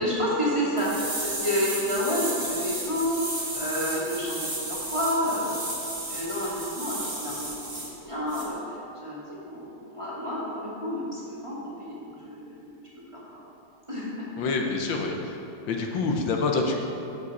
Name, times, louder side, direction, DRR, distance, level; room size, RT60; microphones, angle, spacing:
voice 1, 0.0-5.5 6.1-12.7 13.1-13.2 13.9-14.3, equal, 15° right, -8 dB, 1.8 m, -30 dB
sound 1, 0.8-7.9 8.3-8.4, right 1 dB, 30° right, 2.0 m, -33 dB
voice 2, 14.4-15.4 15.7-16.8, left 3 dB, 75° left, 2 dB, 1.5 m, -26 dB
13.5 x 5.0 x 4.1 m, 2.8 s
omnidirectional pair, 2.1 m